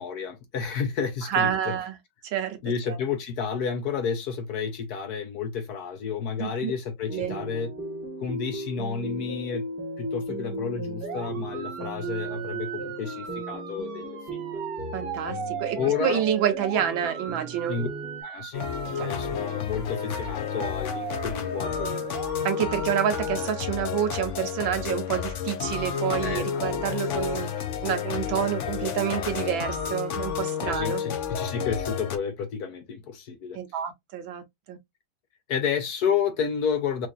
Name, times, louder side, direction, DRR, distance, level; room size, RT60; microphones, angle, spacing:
voice 1, 0.0-1.7 2.6-7.7 8.2-9.7 10.0-14.6 15.8-16.2 17.7-17.9 18.2-18.6 19.0-22.0 26.2-27.0 30.6-33.6 35.5-37.1, left 6 dB, 65° left, 1.1 m, -31 dB
voice 2, 1.3-1.9 2.2-2.6 2.9-3.0 6.4-6.7 7.1-7.4 14.9-17.8 18.9-19.1 22.4-31.0 33.5-34.4 34.7-34.8, right 9 dB, 85° right, 1.6 m, -28 dB
sound 1, 7.1-18.2, right 1 dB, 10° right, 1.0 m, -36 dB
sound 2, 11.0-23.5, right 7 dB, 55° right, 1.3 m, -39 dB
sound 3, 18.5-32.2, left 7 dB, 80° left, 0.6 m, -31 dB
4.7 x 2.6 x 2.4 m
omnidirectional pair, 2.1 m